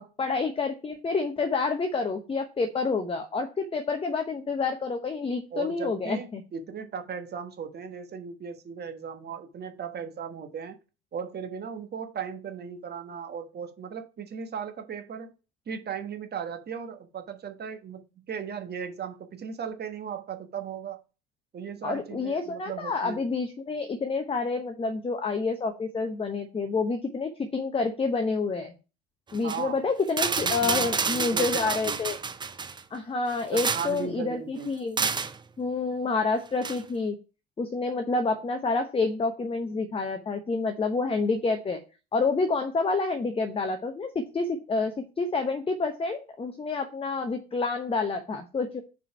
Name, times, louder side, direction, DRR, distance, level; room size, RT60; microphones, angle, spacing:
voice 1, 0.2-6.4 21.8-28.7 29.3-32.2 32.9-35.1 35.6-37.2 37.6-41.8 42.1-48.8, left 4 dB, 15° left, 0.9 m, -28 dB
voice 2, 5.5-10.8 11.1-15.3 15.7-21.0 21.5-23.2 29.4-29.8 30.4-32.0 33.5-34.7, right 7 dB, 30° right, 1.2 m, -37 dB
sound 1, 29.3-29.6 30.1-32.8 33.3-34.0 35.0-35.4 36.6-36.8, right 5 dB, 15° right, 0.6 m, -29 dB
5.0 x 4.9 x 5.6 m
figure-of-eight pair, 65°, 32 cm